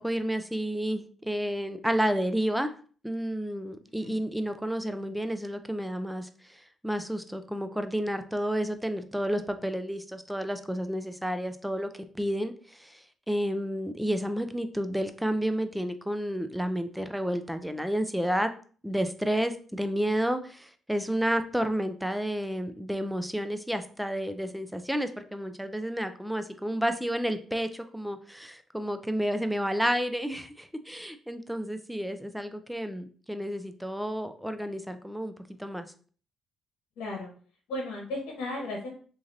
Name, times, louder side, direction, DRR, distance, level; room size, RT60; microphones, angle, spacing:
voice 1, 0.0-2.7 3.0-11.9 12.1-13.0 13.3-18.5 18.8-35.3 35.6-35.9, equal, 5° right, 9 dB, 0.4 m, -31 dB
voice 2, 37.0-37.3 37.7-38.9, left 2 dB, 85° left, -1 dB, 1.0 m, -35 dB
3.1 x 2.6 x 3.8 m, 0.43 s
cardioid pair, 90°, 0 cm